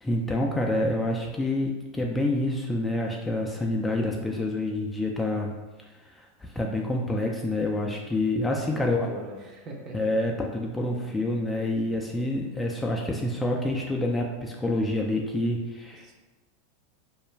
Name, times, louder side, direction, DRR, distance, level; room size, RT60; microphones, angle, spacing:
voice 1, 0.0-5.5 6.0-9.1 9.9-16.1, left 1 dB, 10° left, 0 dB, 0.3 m, -27 dB
voice 2, 8.5-10.0 16.0-16.1, right 1 dB, 35° right, 0 dB, 0.6 m, -41 dB
2.4 x 2.1 x 3.2 m, 1.2 s
hypercardioid pair, 100°, 0 cm